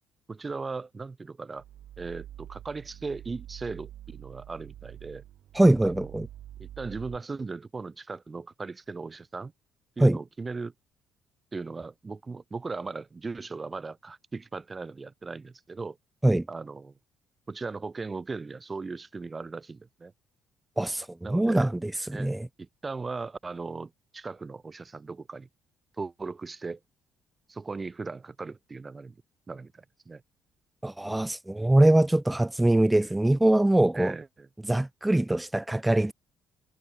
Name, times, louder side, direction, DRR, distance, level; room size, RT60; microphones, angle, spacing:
voice 1, 0.3-1.6 2.0-5.2 5.8-6.1 6.6-9.5 10.0-10.7 11.5-16.0 16.5-16.9 17.5-20.1 21.2-21.7 22.1-25.5 26.0-26.8 27.5-29.2 29.5-30.2 33.9-34.5, right 4 dB, 25° right, 4.0 m, -38 dB
sound 1, 1.6-7.2, right 12 dB, 70° right, 1.5 m, -46 dB
voice 2, 5.5-6.3 10.0-10.2 16.2-16.5 20.8-21.9 22.2-22.5 30.8-34.2 34.6-36.1, right 1 dB, 10° right, 0.4 m, -23 dB
cardioid pair, 90°, 0 cm